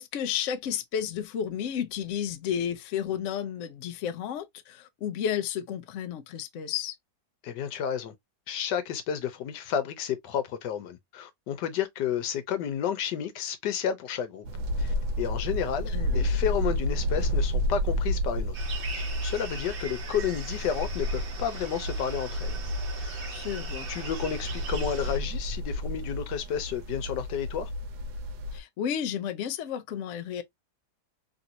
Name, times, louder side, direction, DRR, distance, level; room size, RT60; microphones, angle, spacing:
voice 1, 0.0-7.0 15.9-16.3 23.3-23.9 28.5-30.4, left 9 dB, 70° left, 0.7 m, -32 dB
voice 2, 7.4-8.1 8.5-14.4 14.8-18.6 18.9-22.6 23.0-23.3 23.9-27.7, left 8 dB, 85° left, 1.4 m, -31 dB
sound 1, 14.4-28.6, left 1 dB, 75° right, 1.2 m, -31 dB
sound 2, 18.5-25.2, right 5 dB, 45° right, 0.8 m, -41 dB
3.3 x 2.6 x 2.7 m
omnidirectional pair, 1.8 m